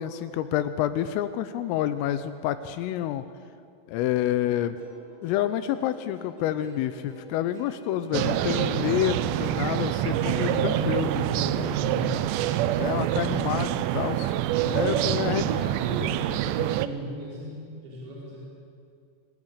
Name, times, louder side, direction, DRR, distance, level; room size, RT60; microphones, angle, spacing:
voice 1, 0.0-3.2 3.9-4.8 5.2-11.1 12.8-14.3 14.6-15.4, left 12 dB, 85° left, 11 dB, 3.3 m, -28 dB
Plucked string instrument, 4.8-12.1, right 2 dB, 15° right, 3.4 m, -46 dB
sound 1, 8.1-16.9, right 13 dB, 85° right, 2.5 m, -26 dB
voice 2, 10.0-12.3 14.7-18.4, equal, 60° right, -6 dB, 7.2 m, -35 dB
25.5 x 15.5 x 10.0 m, 2.4 s
omnidirectional pair, 5.9 m